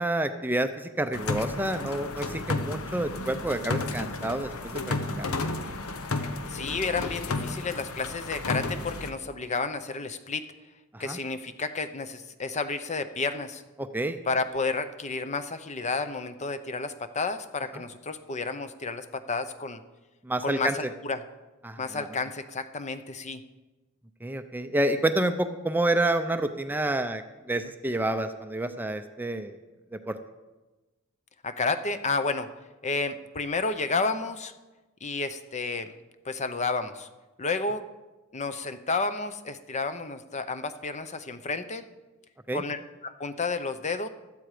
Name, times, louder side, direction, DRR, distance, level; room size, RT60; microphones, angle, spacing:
voice 1, 0.0-5.4 10.9-11.2 13.9-14.2 20.2-20.7 21.6-22.1 24.2-27.2 27.5-29.5 30.1-30.2 42.5-42.6, right 1 dB, 10° right, 8 dB, 0.6 m, -28 dB
sound 1, 1.1-9.1, left 3 dB, 80° left, 1.1 m, -32 dB
voice 2, 6.5-10.4 11.0-13.6 14.3-19.8 20.4-21.2 21.8-23.4 31.4-32.5 32.8-34.5 35.0-35.9 36.2-37.1 37.4-37.8 38.3-41.9 42.5-44.1, left 4 dB, 35° left, 10 dB, 0.8 m, -31 dB
15.5 x 12.0 x 5.0 m, 1.1 s
head